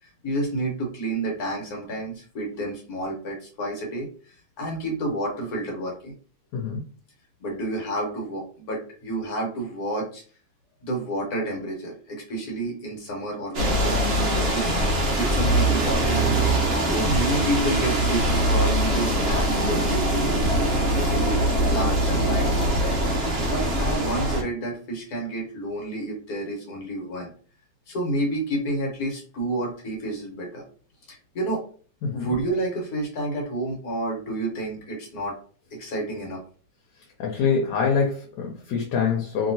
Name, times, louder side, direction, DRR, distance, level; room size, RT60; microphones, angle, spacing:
voice 1, 0.0-6.1 7.4-10.2 10.8-13.9 14.5-14.7 15.1-16.2 16.9-20.4 20.8-23.0 23.4-27.3 27.9-30.6 31.1-31.6 32.1-35.4 35.8-36.4, right 1 dB, 60° left, 0 dB, 1.4 m, -30 dB
voice 2, 6.5-6.9 32.0-32.3 37.2-39.5, left 6 dB, 80° left, -1 dB, 1.3 m, -25 dB
sound 1, 13.5-24.4, right 1 dB, 50° right, 0.8 m, -22 dB
2.8 x 2.8 x 2.7 m, 0.42 s
omnidirectional pair, 1.9 m